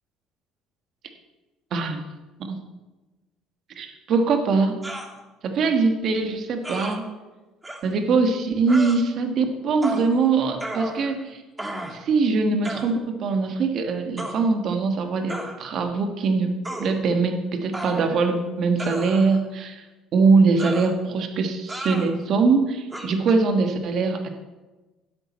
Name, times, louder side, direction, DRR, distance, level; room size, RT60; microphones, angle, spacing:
voice 1, 1.7-2.0 2.4-2.6 3.8-4.8 5.4-7.1 7.8-11.4 11.9-16.5 16.8-19.8 20.1-24.3, right 4 dB, 55° right, 6 dB, 1.3 m, -22 dB
sound 1, 4.8-5.1 6.6-7.0 7.6-7.8 8.7-9.0 9.8-10.1 10.6-11.2 11.6-12.0 12.6-12.9 14.2-14.4 15.3-15.6 16.6-16.9 17.7-18.3 18.8-19.4 20.6-20.9 21.7-22.1 22.9-23.1, right 1 dB, 10° right, 1.4 m, -33 dB
12.0 x 8.2 x 4.3 m, 1.2 s
cardioid pair, 110°, 0 cm